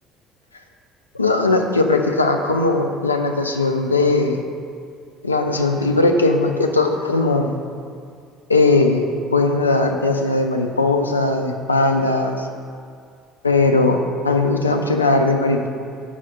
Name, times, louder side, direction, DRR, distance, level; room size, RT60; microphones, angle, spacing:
voice 1, 1.1-4.4 5.2-7.5 8.5-12.5 13.4-15.7, left 2 dB, 85° left, 4 dB, 0.4 m, -18 dB
5.6 x 4.8 x 5.5 m, 2.2 s
figure-of-eight pair, 55°, 0 cm